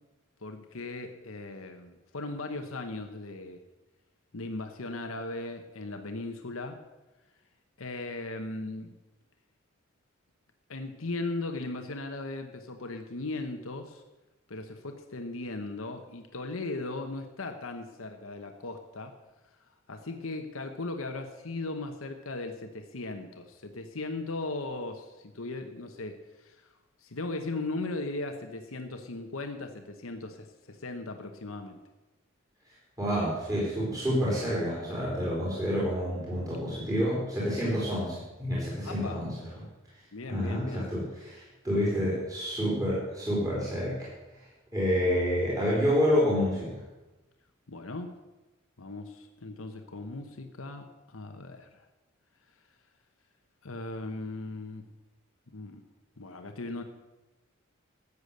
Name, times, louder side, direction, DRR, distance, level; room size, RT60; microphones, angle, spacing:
voice 1, 0.4-3.6 4.3-6.8 7.8-8.9 10.7-14.0 14.5-19.2 19.9-26.7 27.0-31.8 38.8-39.2 40.1-40.9 47.7-48.1 48.8-51.7 53.6-54.8 55.5-55.8 56.2-56.8, left 2 dB, 90° left, 5 dB, 1.1 m, -38 dB
voice 2, 33.0-39.7 40.3-44.1 44.7-46.8, equal, 15° right, -7 dB, 4.0 m, -28 dB
13.5 x 8.2 x 6.7 m, 1.1 s
head